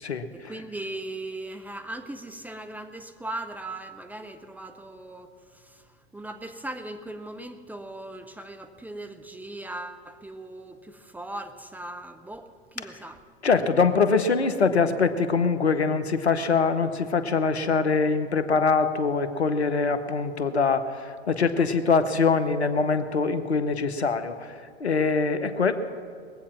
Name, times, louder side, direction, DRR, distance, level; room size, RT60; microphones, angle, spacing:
voice 1, 0.3-13.2 21.6-21.7, right 1 dB, 5° right, 6 dB, 0.7 m, -39 dB
voice 2, 13.4-24.3 24.8-25.7, left 4 dB, 85° left, 10 dB, 1.0 m, -23 dB
21.5 x 8.5 x 5.9 m, 2.2 s
figure-of-eight pair, 95°, 32 cm